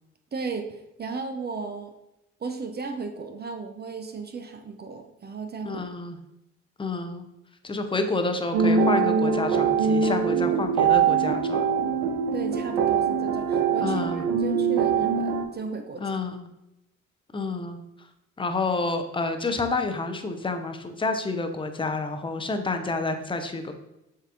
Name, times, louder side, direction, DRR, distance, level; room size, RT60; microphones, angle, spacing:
voice 1, 0.3-1.9 2.4-5.8 12.3-16.2, right 4 dB, 25° right, 6 dB, 0.5 m, -35 dB
voice 2, 5.6-6.2 6.8-7.3 7.6-11.6 13.8-14.2 16.0-16.5 17.3-17.8 18.4-23.7, left 3 dB, 15° left, 6 dB, 0.6 m, -29 dB
sound 1, 8.5-15.5, right 6 dB, 70° right, 0.6 m, -23 dB
7.2 x 2.7 x 2.5 m, 0.89 s
hypercardioid pair, 50°, 37 cm